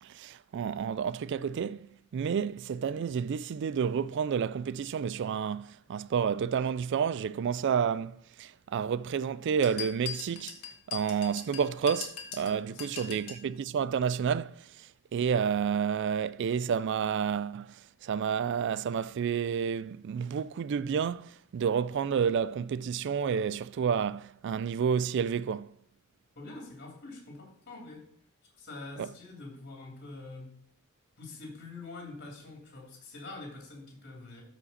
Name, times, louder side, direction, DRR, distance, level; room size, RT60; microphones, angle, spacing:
voice 1, 0.0-10.6 10.9-25.7 29.0-29.1, right 7 dB, 55° right, 0.3 m, -30 dB
sound 1, 9.6-13.5, left 8 dB, 85° left, 1.4 m, -41 dB
voice 2, 12.7-13.2 26.3-28.0 28.6-30.6 31.2-34.4, left 2 dB, 45° left, 2.8 m, -45 dB
13.0 x 5.1 x 4.1 m
head